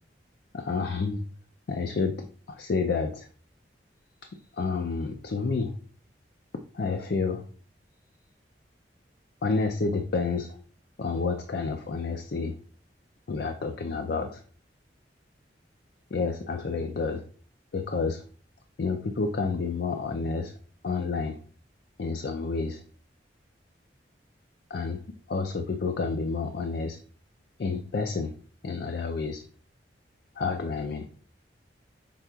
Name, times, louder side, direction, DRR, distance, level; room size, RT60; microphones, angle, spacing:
voice 1, 0.5-1.2 1.7-3.3 4.5-5.7 6.7-7.4 9.4-10.6 11.0-12.5 13.3-14.4 16.1-17.2 17.7-18.2 18.8-20.5 20.8-21.4 22.0-22.8 24.7-25.0 25.3-27.0 27.6-28.3 28.6-29.4 30.4-31.1, left 4 dB, 60° left, 5 dB, 0.4 m, -29 dB
5.8 x 3.7 x 2.3 m, 0.42 s
head